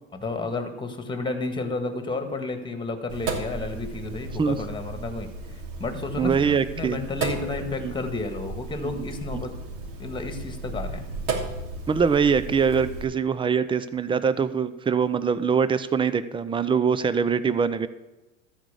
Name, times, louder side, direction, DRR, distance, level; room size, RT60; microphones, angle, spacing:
voice 1, 0.1-9.5 10.0-11.0, left 3 dB, 10° left, 7 dB, 1.7 m, -31 dB
Sink (filling or washing), 3.1-13.0, right 3 dB, 55° right, 3.0 m, -34 dB
voice 2, 6.2-7.0 7.8-7.9 9.0-9.1 9.3-9.4 11.9-17.9, right 6 dB, 15° right, 14 dB, 0.5 m, -23 dB
13.0 x 5.0 x 8.2 m, 1.1 s
hypercardioid pair, 90°, 39 cm